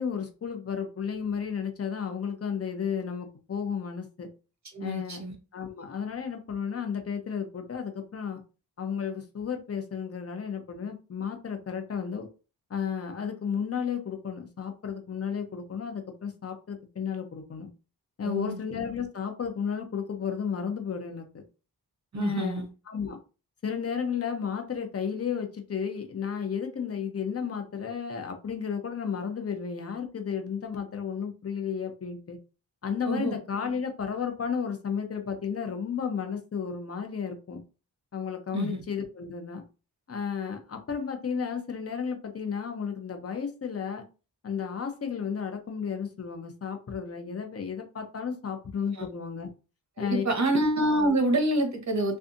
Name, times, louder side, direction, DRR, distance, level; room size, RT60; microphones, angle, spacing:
voice 1, 0.0-4.3 4.8-5.2 5.5-8.4 8.8-12.3 12.7-17.7 18.2-21.4 22.1-23.2 23.6-32.4 32.8-37.6 38.1-39.7 40.1-44.0 44.4-49.5 50.0-50.2, left 7 dB, 40° left, 0.6 m, -33 dB
voice 2, 4.7-5.3 18.2-18.6 22.1-22.7 33.0-33.4 38.5-38.8 48.9-49.0 50.0-52.2, right 1 dB, 45° right, 0.9 m, -27 dB
2.6 x 2.4 x 2.5 m
wide cardioid pair, 65°, 40 cm